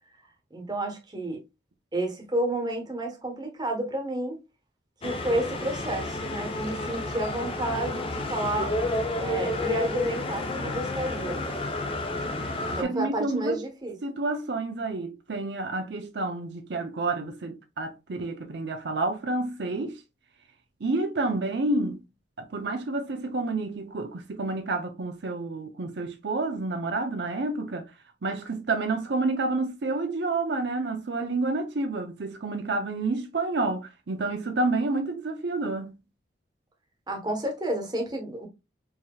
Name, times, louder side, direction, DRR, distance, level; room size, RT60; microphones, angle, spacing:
voice 1, 0.5-1.4 1.9-4.4 5.0-8.8 9.2-11.4 12.8-14.0 37.1-38.5, right 1 dB, 20° right, 1.1 m, -30 dB
sound 1, 5.0-12.8, left 2 dB, 30° left, 0.6 m, -31 dB
voice 2, 12.7-13.6 14.0-20.0 20.8-22.0 22.4-27.9 28.2-36.0, right 2 dB, 70° right, 0.6 m, -29 dB
4.7 x 2.9 x 2.3 m
head